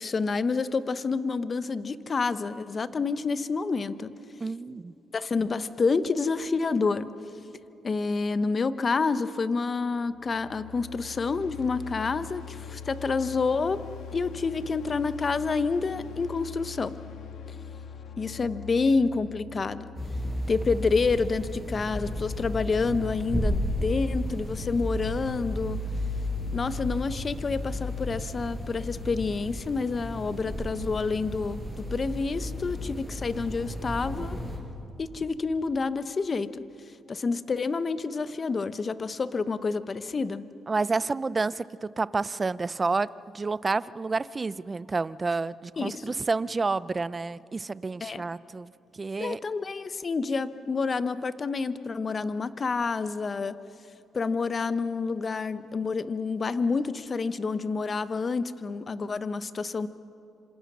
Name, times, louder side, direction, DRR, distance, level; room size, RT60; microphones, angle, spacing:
voice 1, 0.0-4.1 5.1-7.1 7.8-13.8 14.1-17.0 18.2-19.8 20.5-25.9 26.5-34.4 35.0-36.6 37.1-40.4 45.8-46.1 48.0-48.2 49.2-53.6 54.1-59.9, left 4 dB, 35° left, 13 dB, 1.0 m, -28 dB
voice 2, 4.4-4.9 40.7-49.4, right 3 dB, 30° right, 18 dB, 0.5 m, -29 dB
sound 1, 10.0-21.1, left 7 dB, 75° left, 1.6 m, -43 dB
sound 2, 19.9-34.6, left 1 dB, 5° left, 7.3 m, -33 dB
27.0 x 26.5 x 6.2 m, 2.7 s
cardioid pair, 90°, 0 cm